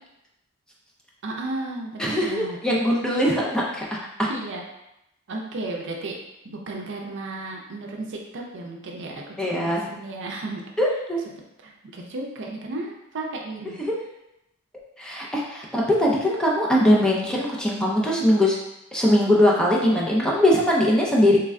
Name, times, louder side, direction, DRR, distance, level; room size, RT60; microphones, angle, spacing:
voice 1, 1.2-2.6 3.1-3.2 4.3-4.6 5.3-6.2 6.4-10.6 11.6-13.8, right 2 dB, 60° right, 0 dB, 0.5 m, -34 dB
voice 2, 2.0-4.3 9.4-9.8 10.8-11.2 13.9-14.0 15.0-18.6 18.9-21.4, left 1 dB, 5° left, -4 dB, 0.4 m, -21 dB
3.2 x 2.2 x 3.5 m, 0.87 s
head